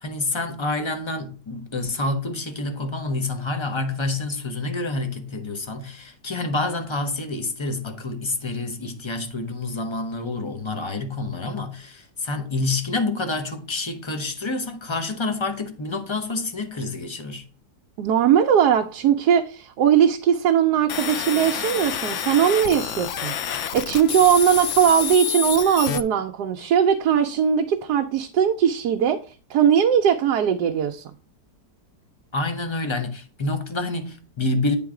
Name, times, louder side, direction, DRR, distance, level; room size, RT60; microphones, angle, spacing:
voice 1, 0.0-17.4 32.3-34.8, left 2 dB, 30° left, 0.5 m, -28 dB
voice 2, 18.0-29.2 29.5-31.0, right 8 dB, 70° right, 1.1 m, -20 dB
sound 1, 20.9-26.0, left 9 dB, 75° left, 0.6 m, -28 dB
8.6 x 3.9 x 4.8 m
omnidirectional pair, 1.9 m